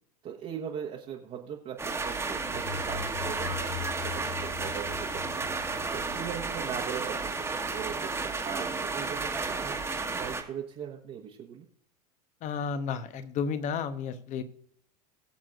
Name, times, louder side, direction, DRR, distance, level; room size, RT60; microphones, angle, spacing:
voice 1, 0.2-8.1 8.4-9.8 10.1-11.7 14.4-14.5, right 8 dB, 35° right, -1 dB, 1.2 m, -40 dB
sound 1, 1.8-10.4, right 4 dB, 10° right, 1.4 m, -33 dB
sound 2, 2.5-8.2 8.5-8.6, left 8 dB, 75° left, 1.7 m, -42 dB
voice 2, 12.4-14.4, left 6 dB, 40° left, 11 dB, 1.0 m, -32 dB
21.5 x 7.4 x 2.5 m, 0.66 s
figure-of-eight pair, 85°, 20 cm